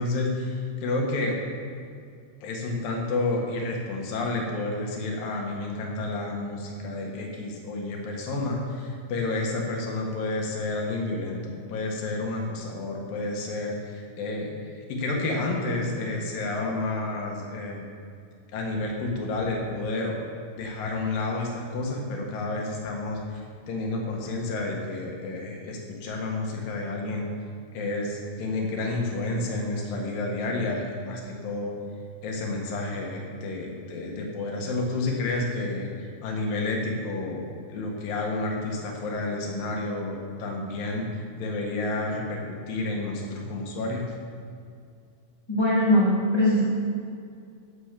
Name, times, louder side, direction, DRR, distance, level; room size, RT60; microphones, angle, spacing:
voice 1, 0.0-1.4 2.4-17.9 18.5-20.2 20.6-27.3 27.7-31.7 32.2-37.4 37.7-44.1, left 2 dB, 60° left, 0 dB, 3.0 m, -30 dB
voice 2, 45.5-46.6, left 1 dB, 25° left, -7 dB, 0.5 m, -21 dB
10.0 x 8.1 x 7.5 m, 2.4 s
omnidirectional pair, 5.0 m